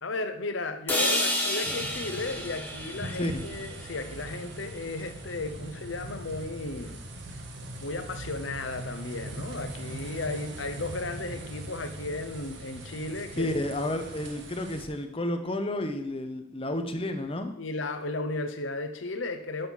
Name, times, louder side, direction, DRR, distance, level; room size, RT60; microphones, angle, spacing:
voice 1, 0.0-7.0 7.8-13.5 17.6-19.7, left 2 dB, 75° left, 8 dB, 0.9 m, -34 dB
sound 1, 0.9-4.9, left 1 dB, 10° left, 1.4 m, -31 dB
sound 2, 1.6-14.9, right 1 dB, 65° right, 1.3 m, -41 dB
voice 2, 13.4-17.5, left 1 dB, 30° left, 7 dB, 0.8 m, -31 dB
6.7 x 6.0 x 7.1 m, 0.80 s
head